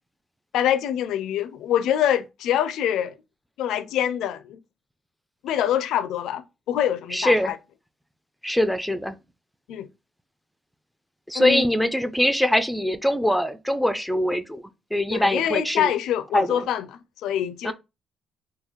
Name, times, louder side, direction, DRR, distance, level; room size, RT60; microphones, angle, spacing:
voice 1, 0.5-3.1 3.6-4.6 5.4-7.6 9.7-9.9 11.3-11.7 15.1-16.9 17.2-17.7, left 10 dB, 85° left, 0.4 m, -25 dB
voice 2, 7.1-7.5 8.4-9.2 11.3-14.6 14.9-15.9 16.3-16.7 17.6-17.7, left 1 dB, ahead, 0.4 m, -23 dB
3.7 x 2.3 x 3.0 m
cardioid pair, 90°, 0 cm